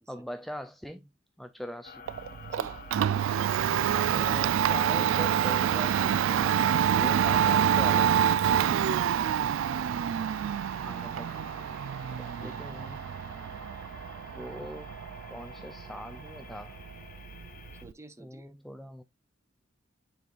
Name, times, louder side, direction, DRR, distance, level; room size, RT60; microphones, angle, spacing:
voice 1, 0.1-1.1 1.4-2.0 3.9-6.6 6.9-8.3 10.8-11.3 12.2-13.0 14.3-14.9 15.3-16.7 18.2-19.0, equal, ahead, 0.4 m, -41 dB
sound 1, 1.8-17.8, left 4 dB, 45° left, 1.2 m, -50 dB
Domestic sounds home sounds, 2.1-17.9, right 9 dB, 80° right, 0.3 m, -27 dB
voice 2, 2.5-2.8 12.4-12.6 17.8-18.5, right 2 dB, 15° right, 0.8 m, -50 dB
9.4 x 4.5 x 2.4 m
head